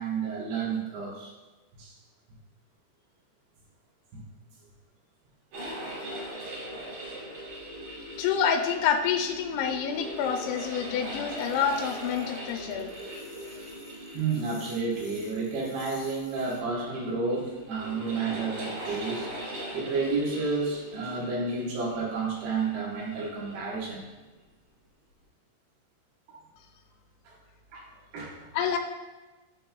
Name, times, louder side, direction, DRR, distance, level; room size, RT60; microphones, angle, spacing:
voice 1, 0.0-1.3 1.7-2.0 4.1-4.2 14.1-19.3 19.7-24.0 26.3-26.4 27.2-27.3 27.7-27.9 28.1-28.5, right 4 dB, 65° right, -4 dB, 3.0 m, -31 dB
sound 1, 5.5-24.1, right 1 dB, 50° right, 3.2 m, -41 dB
voice 2, 8.2-12.9 28.5-28.8, left 7 dB, 85° left, 4 dB, 3.0 m, -27 dB
sound 2, 11.4-16.6, left 3 dB, 60° left, 1.9 m, -52 dB
12.5 x 4.2 x 2.3 m, 1.2 s
omnidirectional pair, 5.2 m